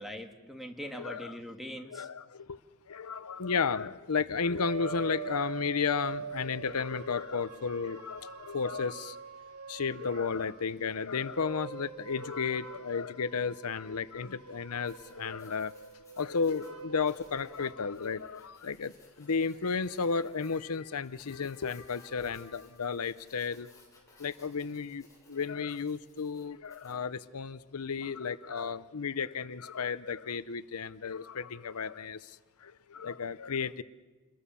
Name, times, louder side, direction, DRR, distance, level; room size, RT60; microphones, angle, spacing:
voice 1, 0.0-2.1, equal, ahead, 1.9 m, -42 dB
voice 2, 1.0-1.3 1.9-2.6 2.9-9.2 9.7-15.7 16.2-23.7 24.2-33.8, left 5 dB, 80° left, 0.7 m, -33 dB
sound 1, 4.6-10.6 11.2-18.0, right 7 dB, 70° right, 1.4 m, -44 dB
Writing, 14.8-27.1, left 2 dB, 15° left, 7.0 m, -61 dB
28.5 x 22.0 x 7.0 m
head